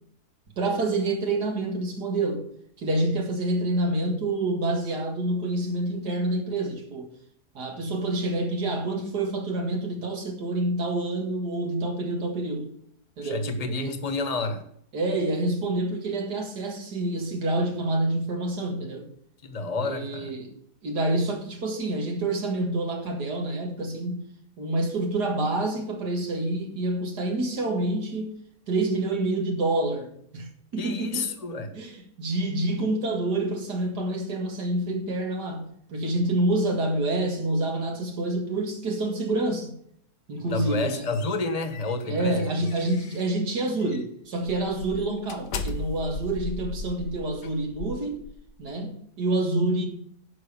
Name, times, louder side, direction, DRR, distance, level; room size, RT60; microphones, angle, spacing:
voice 1, 0.6-2.5 2.8-7.1 7.5-12.7 13.2-13.5 13.8-14.0 14.9-19.1 19.8-20.5 20.8-24.2 24.6-28.3 28.7-31.3 31.8-39.7 40.3-41.1 42.1-48.2 48.6-49.9, right 2 dB, 85° right, 2.5 m, -27 dB
voice 2, 13.2-14.6 19.4-20.3 30.8-31.7 40.4-42.4, left 3 dB, 25° left, 1.2 m, -29 dB
sound 1, 40.4-43.3 43.8-44.0 44.5-48.7, left 3 dB, 85° left, 1.6 m, -38 dB
11.0 x 5.6 x 6.9 m
omnidirectional pair, 1.7 m